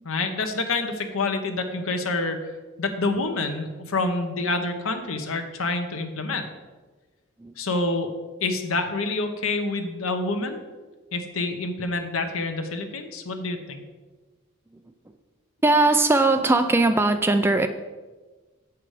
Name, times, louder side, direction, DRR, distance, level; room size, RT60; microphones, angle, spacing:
voice 1, 0.0-2.4 2.8-6.4 7.6-8.1 8.4-10.6 11.1-13.8, left 3 dB, 80° left, 6 dB, 1.0 m, -27 dB
voice 2, 15.6-17.7, right 2 dB, 10° right, 8 dB, 0.3 m, -19 dB
7.8 x 5.9 x 4.9 m, 1.3 s
head